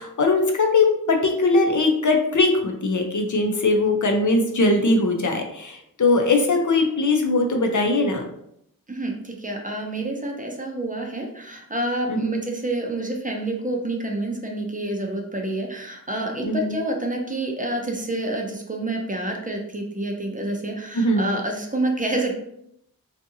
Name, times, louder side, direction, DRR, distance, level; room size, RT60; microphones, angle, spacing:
voice 1, 0.0-8.2 12.1-12.4 16.4-16.8 20.9-21.3, left 2 dB, 55° left, 3 dB, 0.6 m, -20 dB
voice 2, 8.9-22.4, right 1 dB, 25° right, 1 dB, 0.5 m, -28 dB
2.7 x 2.4 x 2.7 m, 0.74 s
wide cardioid pair, 60°, 36 cm